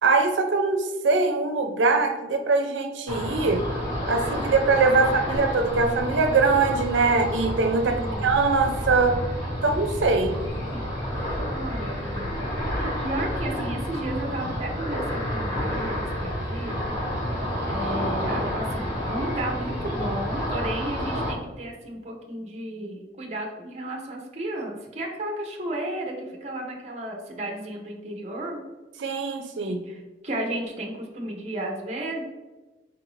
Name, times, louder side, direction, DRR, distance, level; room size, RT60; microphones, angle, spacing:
voice 1, 0.0-3.6 4.1-9.2 9.6-10.4 29.0-29.8, right 4 dB, 85° right, 5 dB, 0.5 m, -22 dB
Ocean, 3.1-21.3, equal, 25° left, 1.2 m, -29 dB
voice 2, 5.0-5.5 7.8-8.4 10.7-11.1 11.5-12.4 13.0-17.0 17.7-28.6 29.6-32.2, right 1 dB, 35° right, 1 dB, 0.7 m, -33 dB
4.5 x 2.5 x 3.1 m, 1.2 s
head